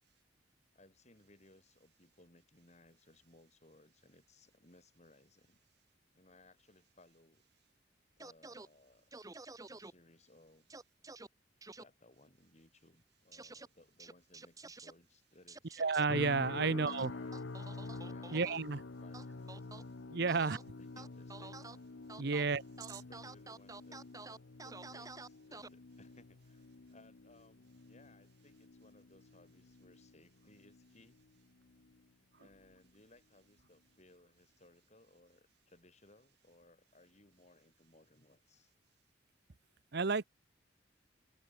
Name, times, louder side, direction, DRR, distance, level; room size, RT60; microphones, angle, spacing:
voice 1, 0.7-5.6 6.1-7.5 8.2-9.1 9.7-10.7 11.7-15.8 16.5-17.5 18.0-19.7 20.2-21.8 22.2-22.6 22.9-24.0 24.3-31.2 32.4-38.7, left 2 dB, 40° left, 7.3 m, -64 dB
sound 1, 8.2-8.7 9.1-9.9 10.7-11.3 11.6-11.8 13.3-13.7 14.0-14.9 15.5-16.0 16.9-18.6 19.1-19.8 20.3-20.6 21.0-21.8 22.1-22.4 22.8-25.7, right 3 dB, 20° right, 1.0 m, -50 dB
voice 2, 15.8-17.1 18.3-18.8 20.1-20.6 22.2-22.6 39.9-40.2, right 4 dB, 65° right, 0.8 m, -31 dB
sound 2, 16.1-31.3 31.6-32.0 32.5-32.7, left 3 dB, 80° left, 0.9 m, -48 dB
open air
head